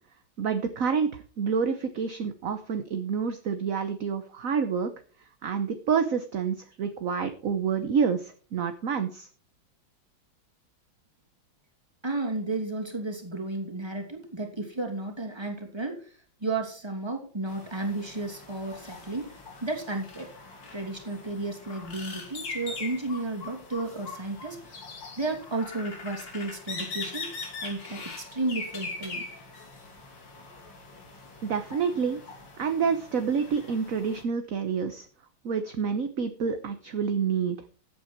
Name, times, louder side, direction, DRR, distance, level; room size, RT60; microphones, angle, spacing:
voice 1, 0.4-4.9 5.4-9.3 31.4-32.2 32.6-35.1 35.4-37.6, right 6 dB, 50° right, 8 dB, 1.2 m, -28 dB
voice 2, 12.0-16.1 16.4-19.3 19.6-20.3 20.7-24.8 25.2-27.3 27.6-29.2, right 2 dB, 15° right, 2 dB, 2.8 m, -33 dB
sound 1, 17.5-34.2, left 3 dB, 70° left, 3.6 m, -42 dB
14.5 x 8.6 x 4.5 m, 0.40 s
omnidirectional pair, 2.1 m